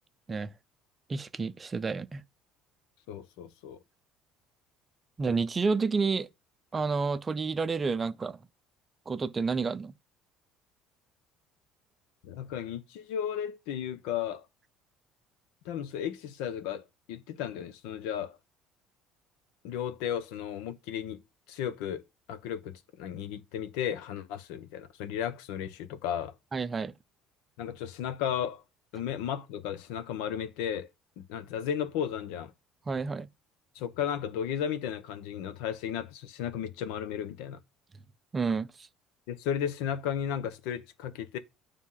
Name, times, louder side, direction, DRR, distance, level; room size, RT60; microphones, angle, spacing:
voice 1, 1.1-2.2 5.2-6.3 6.7-8.4 9.1-9.9 26.5-26.9 32.9-33.3 38.3-38.7, right 4 dB, 20° right, 0.5 m, -29 dB
voice 2, 3.1-3.8 12.2-14.4 15.6-18.4 19.6-21.2 21.5-22.0 22.3-26.3 27.6-28.6 28.9-30.9 31.2-32.5 33.7-37.6 39.3-41.4, left 9 dB, 90° left, 1.1 m, -34 dB
9.8 x 3.6 x 5.7 m
cardioid pair, 150°, 0 cm